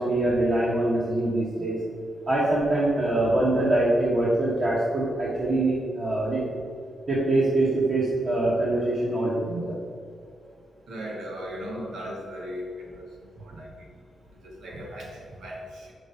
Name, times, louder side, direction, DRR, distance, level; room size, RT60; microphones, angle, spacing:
voice 1, 0.0-1.8 2.3-6.4 7.1-9.8, right 2 dB, 35° right, -6 dB, 1.2 m, -24 dB
voice 2, 10.9-13.1 13.4-13.7 14.4-15.9, equal, 80° right, -2 dB, 1.5 m, -37 dB
5.2 x 4.6 x 5.4 m, 2.3 s
wide cardioid pair, 155°, 0 cm